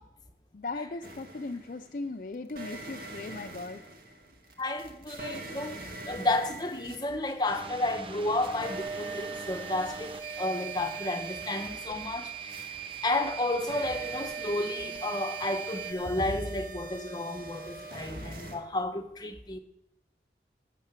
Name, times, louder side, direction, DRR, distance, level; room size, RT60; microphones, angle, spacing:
voice 1, 0.5-3.8, left 3 dB, 50° left, 0.5 m, -38 dB
sound 1, 1.0-1.9 2.5-7.9 8.2-18.6, right 3 dB, 55° right, 2.2 m, -43 dB
voice 2, 4.6-12.7 13.0-19.6, left 1 dB, 25° left, 1.2 m, -32 dB
sound 2, 7.4-15.9, right 7 dB, 30° right, 0.9 m, -41 dB
13.0 x 7.0 x 8.2 m
head